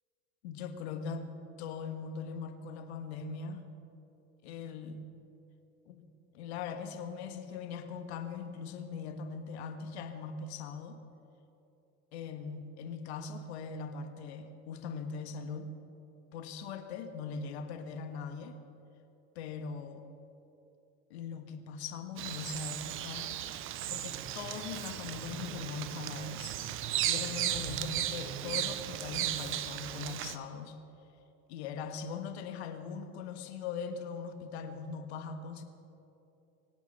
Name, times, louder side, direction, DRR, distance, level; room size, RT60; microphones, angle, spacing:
voice 1, 0.4-1.3 1.6-3.6 4.4-5.1 5.9-6.0 6.3-11.0 12.1-15.7 16.3-18.6 19.3-20.0 21.1-23.3 23.9-26.6 27.1-30.8 31.5-35.6, left 5 dB, 80° left, 7 dB, 1.7 m, -40 dB
Bird vocalization bird call bird song, 22.2-30.4, right 12 dB, 40° right, 0.9 m, -36 dB
24.5 x 8.5 x 6.9 m, 2.9 s
supercardioid pair, 125°, 32 cm